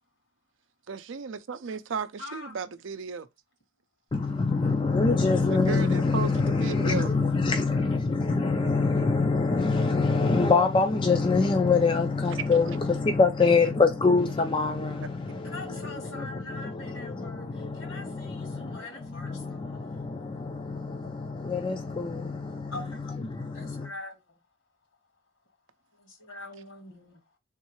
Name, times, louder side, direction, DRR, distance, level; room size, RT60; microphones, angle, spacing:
voice 1, 0.9-3.3 5.5-6.3 6.6-7.1 12.3-12.6, right 6 dB, 65° right, 0.5 m, -34 dB
voice 2, 2.2-2.5 5.2-5.6 15.4-20.1 22.7-23.0 23.5-24.2 26.0-27.2, left 2 dB, 70° left, 1.9 m, -43 dB
voice 3, 4.1-22.7 23.3-23.9, left 4 dB, 25° left, 0.3 m, -25 dB
3.7 x 3.1 x 3.0 m
head